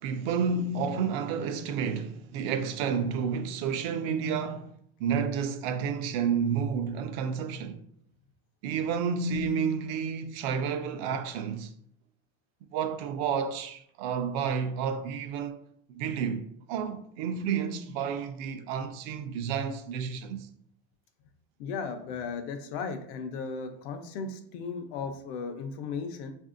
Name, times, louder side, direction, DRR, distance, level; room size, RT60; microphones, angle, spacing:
voice 1, 0.0-4.7 5.0-7.8 8.6-11.7 12.7-15.6 15.9-20.5, right 6 dB, 70° right, 0.5 m, -30 dB
voice 2, 21.6-26.3, left 5 dB, 75° left, 0.6 m, -36 dB
5.0 x 2.6 x 2.5 m
cardioid pair, 175°, 31 cm